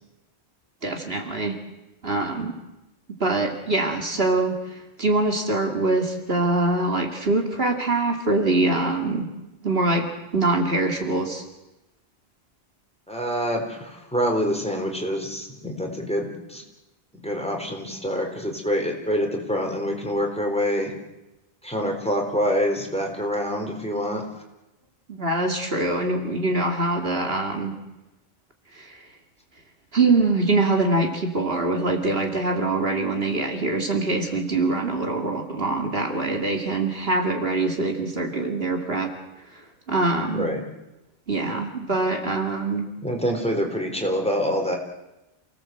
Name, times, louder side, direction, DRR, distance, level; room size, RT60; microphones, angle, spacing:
voice 1, 0.8-1.6 2.0-2.5 3.2-9.3 9.6-10.1 10.3-11.4 25.1-27.7 28.7-29.0 29.9-39.1 39.5-39.6 39.9-40.5 41.3-42.9, right 2 dB, 65° right, 3 dB, 2.7 m, -24 dB
voice 2, 13.1-16.6 17.2-20.9 21.6-24.2 40.3-40.6 43.0-44.8, equal, 5° left, 1 dB, 4.1 m, -26 dB
29.0 x 18.0 x 7.8 m, 0.98 s
omnidirectional pair, 1.1 m